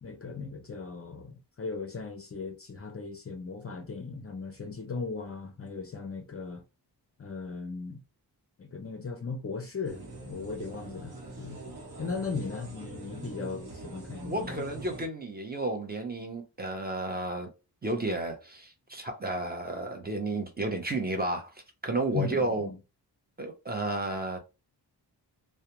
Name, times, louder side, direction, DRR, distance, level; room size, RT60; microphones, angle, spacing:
voice 1, 0.0-6.6 7.2-8.0 8.6-11.6 12.0-14.6 22.1-22.8, left 4 dB, 35° left, 0.5 m, -37 dB
sound 1, 9.8-15.1, right 2 dB, 65° right, 0.9 m, -44 dB
voice 2, 14.2-17.5 17.8-21.5 21.8-22.7 23.4-24.4, right 2 dB, 25° right, 0.6 m, -32 dB
2.3 x 2.1 x 2.9 m
wide cardioid pair, 105°, 41 cm